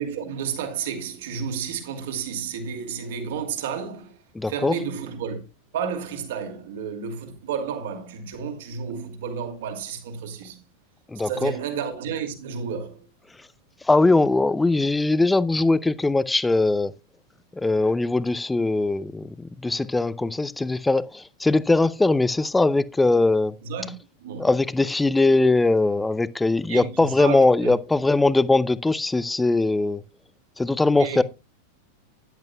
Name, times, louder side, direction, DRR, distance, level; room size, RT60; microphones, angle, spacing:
voice 1, 0.0-4.2 4.5-5.4 5.7-10.6 11.2-13.0 23.6-23.9 24.2-24.5 26.7-27.7 31.0-31.2, right 7 dB, 55° right, 2.5 m, -31 dB
voice 2, 4.3-4.7 11.1-11.5 13.8-16.9 17.6-23.6 24.4-30.0 30.6-31.2, left 2 dB, 10° left, 0.6 m, -21 dB
14.0 x 10.5 x 2.3 m
figure-of-eight pair, 90°, 0 cm